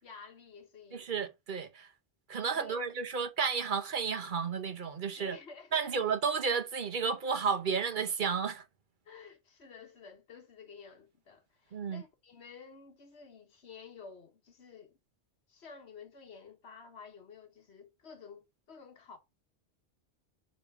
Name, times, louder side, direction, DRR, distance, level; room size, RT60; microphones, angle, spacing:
voice 1, 0.0-1.1 2.5-2.9 5.2-6.0 9.0-15.0 15.5-19.2, left 5 dB, 70° left, 1.5 m, -52 dB
voice 2, 0.9-1.9 2.3-5.4 5.7-8.6 11.7-12.0, right 6 dB, 50° right, 0.9 m, -32 dB
7.0 x 3.3 x 4.6 m
omnidirectional pair, 1.1 m